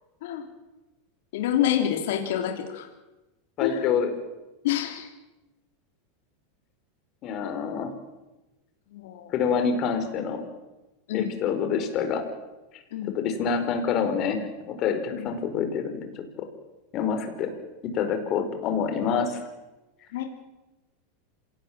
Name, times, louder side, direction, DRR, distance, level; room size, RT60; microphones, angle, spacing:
voice 1, 1.3-2.9 3.6-3.9 4.6-5.1 8.9-9.3 11.1-11.3 12.9-13.1 15.1-15.3 20.1-20.3, left 10 dB, 70° left, 4 dB, 3.3 m, -27 dB
voice 2, 3.6-4.1 7.2-7.9 9.3-10.4 11.1-12.2 13.1-16.1 16.9-17.5 17.8-19.4, left 6 dB, 45° left, 7 dB, 4.8 m, -26 dB
26.5 x 18.5 x 7.6 m, 1.0 s
hypercardioid pair, 110°, 0 cm